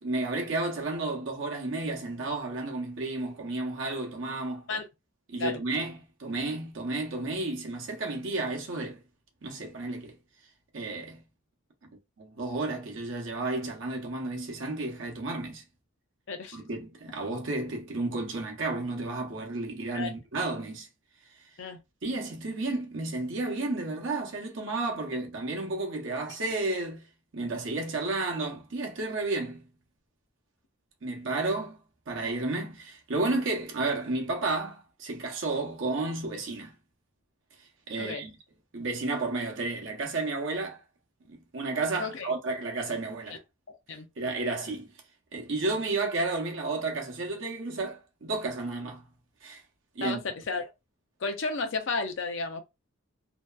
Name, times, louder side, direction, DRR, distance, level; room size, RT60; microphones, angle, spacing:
voice 1, 0.0-4.7 5.3-9.0 9.4-10.2 10.7-11.2 11.8-15.6 16.5-20.9 22.0-27.0 27.3-29.6 31.0-31.8 32.1-36.7 37.9-38.3 38.7-40.8 41.3-43.4 44.2-44.9 45.3-49.0 49.4-49.6 50.0-50.2, right 2 dB, 60° right, 0.7 m, -32 dB
voice 2, 42.0-42.3 43.3-43.4 43.7-44.1 50.0-50.7 51.2-52.6, left 3 dB, 60° left, 0.5 m, -33 dB
2.7 x 2.2 x 2.2 m
head